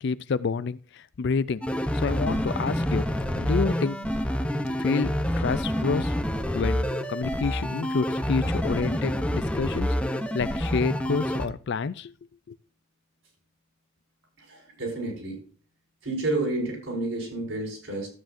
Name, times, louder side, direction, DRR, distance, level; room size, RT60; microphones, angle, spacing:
voice 1, 0.0-1.6 1.9-4.0 4.8-6.1 6.5-6.8 7.1-12.1 12.5-12.6, left 5 dB, 55° left, 0.4 m, -29 dB
sound 1, 1.6-11.5, equal, 5° left, 0.7 m, -27 dB
voice 2, 14.4-15.4 16.0-18.1, right 2 dB, 70° right, 5.4 m, -30 dB
12.5 x 8.9 x 2.6 m
head